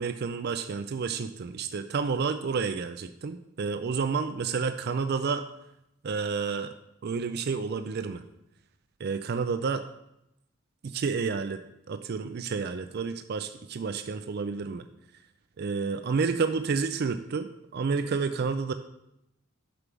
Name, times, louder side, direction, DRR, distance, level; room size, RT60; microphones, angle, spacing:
voice 1, 0.0-5.4 6.0-6.7 7.0-8.2 9.0-9.8 10.8-11.6 11.9-14.8 15.6-18.7, right 5 dB, 50° right, 9 dB, 0.4 m, -30 dB
6.7 x 5.3 x 6.1 m, 0.85 s
head